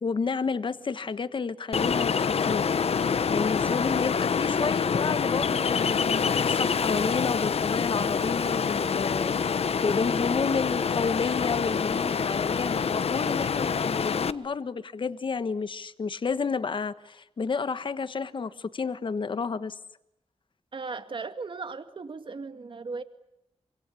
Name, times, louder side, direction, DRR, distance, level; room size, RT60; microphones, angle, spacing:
voice 1, 0.0-2.1 2.5-2.7 3.3-9.5 9.8-19.8, left 5 dB, 50° left, 1.3 m, -30 dB
Ocean, 1.7-14.3, left 6 dB, 65° left, 1.0 m, -26 dB
voice 2, 20.7-23.0, right 4 dB, 50° right, 2.3 m, -37 dB
26.5 x 26.0 x 8.5 m
wide cardioid pair, 170°, 11 cm